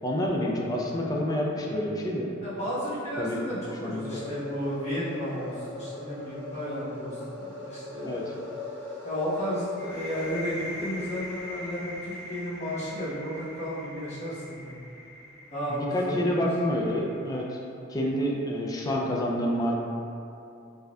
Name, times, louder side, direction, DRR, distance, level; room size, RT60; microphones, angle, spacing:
voice 1, 0.0-2.3 3.2-3.4 3.8-4.2 8.0-8.3 15.7-17.6 17.9-19.7, equal, 20° left, -2 dB, 0.3 m, -28 dB
voice 2, 2.4-8.2 9.0-14.8 15.5-16.2, equal, 35° left, -12 dB, 1.2 m, -33 dB
sound 1, 3.8-10.3, left 2 dB, 10° right, 1.3 m, -40 dB
sound 2, 9.8-17.3, left 1 dB, 55° right, 1.1 m, -42 dB
4.1 x 2.6 x 2.3 m, 2.7 s
head